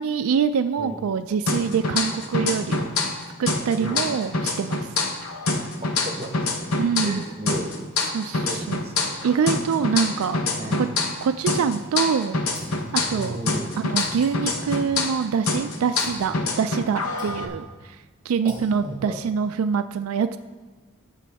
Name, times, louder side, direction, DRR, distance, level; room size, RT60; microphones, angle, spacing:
voice 1, 0.0-2.9 3.4-4.9 6.8-7.2 8.0-8.8 9.2-10.4 10.8-10.9 11.2-12.4 12.9-13.4 13.8-18.0 18.2-20.4, right 6 dB, 80° right, 9 dB, 0.4 m, -25 dB
sound 1, 1.5-3.2 3.5-7.2 7.5-11.2 11.5-15.2 15.5-17.5, left 3 dB, 90° left, 0.9 m, -26 dB
voice 2, 3.8-4.1 5.8-6.7 7.0-7.9 8.4-9.3 10.6-11.0 13.1-13.8 18.4-18.6 18.8-19.2, right 1 dB, 30° right, 4 dB, 1.1 m, -35 dB
sound 2, 12.5-13.6 14.0-15.3 16.0-16.4 17.2-17.7 18.5-19.1, equal, 40° left, 3.4 m, -43 dB
14.5 x 8.3 x 3.5 m, 1.3 s
head